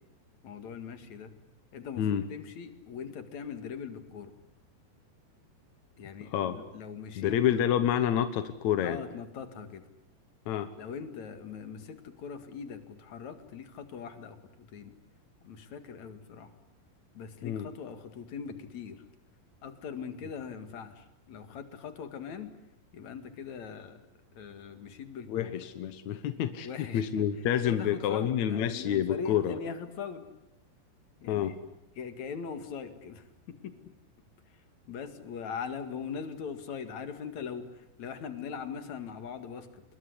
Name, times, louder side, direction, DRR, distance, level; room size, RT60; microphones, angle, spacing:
voice 1, 0.4-1.3 1.7-4.3 6.0-7.6 8.8-9.9 10.8-14.9 15.4-16.5 17.1-19.0 19.6-22.5 22.9-24.0 24.3-25.5 26.6-27.2 27.6-30.2 31.2-31.5 32.0-33.8 34.5-39.8, left 6 dB, 50° left, 9 dB, 2.9 m, -41 dB
voice 2, 7.2-9.0 10.5-10.7 17.4-17.7 25.3-29.6 31.3-31.6, left 10 dB, 70° left, 10 dB, 1.8 m, -28 dB
27.5 x 21.5 x 9.8 m, 0.87 s
omnidirectional pair, 4.8 m